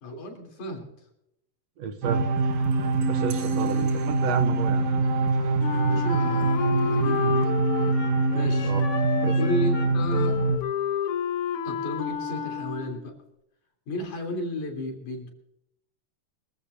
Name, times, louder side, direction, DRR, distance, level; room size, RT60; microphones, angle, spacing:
voice 1, 0.0-0.9 5.7-7.6 8.3-8.7 9.4-10.4 11.6-13.1 13.9-15.3, left 1 dB, 75° left, 2 dB, 4.8 m, -33 dB
voice 2, 1.8-2.3 3.0-4.9 8.6-8.8 9.2-9.4, right 7 dB, 65° right, 8 dB, 1.9 m, -31 dB
sound 1, 2.0-10.6, right 3 dB, 85° right, 3.0 m, -24 dB
Wind instrument woodwind instrument, 5.6-13.2, left 8 dB, 60° left, 1.6 m, -31 dB
24.0 x 15.5 x 2.7 m, 0.82 s
omnidirectional pair, 3.5 m